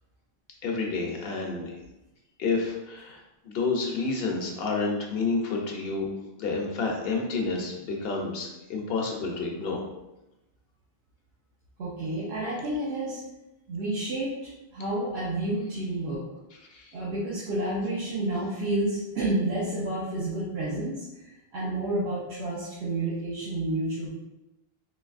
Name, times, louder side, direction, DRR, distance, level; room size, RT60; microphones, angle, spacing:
voice 1, 0.6-1.8 2.4-6.1 6.4-9.8 16.7-16.9, left 4 dB, 75° left, 1 dB, 0.8 m, -29 dB
voice 2, 11.8-13.2 13.7-14.3 14.7-16.2 16.9-24.1, right 1 dB, 90° right, -8 dB, 1.0 m, -30 dB
3.9 x 2.6 x 2.4 m, 0.96 s
omnidirectional pair, 1.0 m